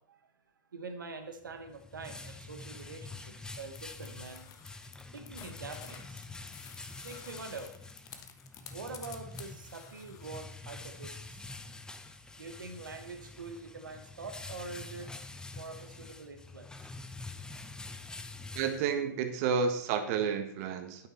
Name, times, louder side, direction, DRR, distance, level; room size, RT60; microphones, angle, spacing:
voice 1, 0.7-4.5 5.1-6.2 7.0-7.7 8.7-11.5 12.4-15.1 15.5-16.9, right 4 dB, 90° right, 7 dB, 1.1 m, -45 dB
sound 1, 1.4-19.3, left 3 dB, 5° left, 0.7 m, -46 dB
sound 2, 3.7-10.4, left 8 dB, 35° left, 1.2 m, -51 dB
voice 2, 18.5-21.1, right 6 dB, 50° right, 7 dB, 1.5 m, -31 dB
9.1 x 8.5 x 4.2 m, 0.70 s
hypercardioid pair, 115°, 10 cm